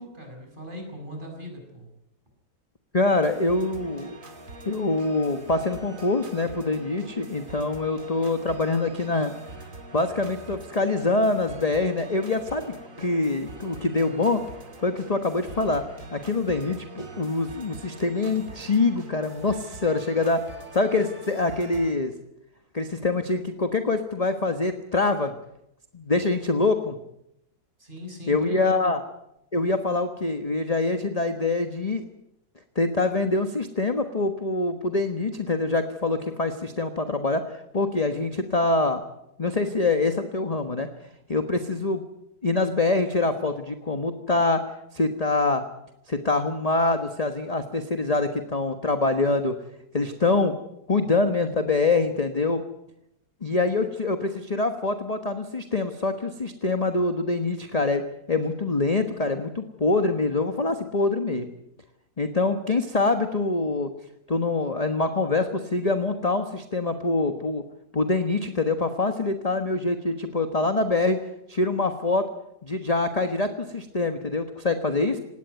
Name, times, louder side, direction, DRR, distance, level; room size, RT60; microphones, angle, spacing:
voice 1, 0.0-1.9 27.8-28.8, left 1 dB, 30° right, 2 dB, 6.8 m, -39 dB
voice 2, 2.9-4.2 4.6-9.3 9.9-14.4 14.8-15.8 16.1-20.4 20.7-22.1 22.7-25.3 25.9-27.0 28.3-29.0 29.5-32.0 32.7-39.0 39.4-40.9 41.3-42.0 42.4-44.6 44.9-45.6 46.1-49.6 49.9-50.5 50.9-52.6 53.4-58.0 58.3-61.5 62.2-63.9 64.3-67.6 67.9-71.2 71.5-72.3 72.6-75.2, left 3 dB, 25° left, 7 dB, 1.3 m, -25 dB
sound 1, 3.1-21.9, right 2 dB, 50° right, 2.8 m, -44 dB
19.0 x 17.5 x 9.5 m, 0.80 s
omnidirectional pair, 1.8 m